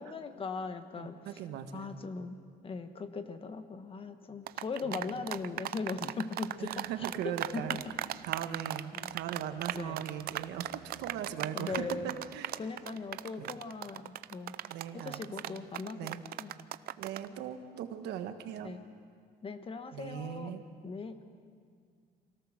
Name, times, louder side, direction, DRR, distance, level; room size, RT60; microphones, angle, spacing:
voice 1, 0.0-1.2 1.7-2.4 2.6-6.8 7.5-7.8 9.0-9.2 9.7-10.0 11.5-12.1 12.6-14.5 14.9-16.5 18.6-18.8 19.4-20.5 20.8-21.2, left 4 dB, 35° left, 9 dB, 1.3 m, -39 dB
voice 2, 1.0-2.0 4.8-5.0 6.6-7.8 8.2-12.6 13.4-13.6 14.6-15.7 16.0-16.2 17.0-18.8 19.9-20.6, right 9 dB, 85° right, 7 dB, 1.5 m, -39 dB
sound 1, 4.5-17.3, right 13 dB, 65° right, 0.6 m, -37 dB
24.0 x 17.5 x 6.6 m, 2.1 s
cardioid pair, 110°, 17 cm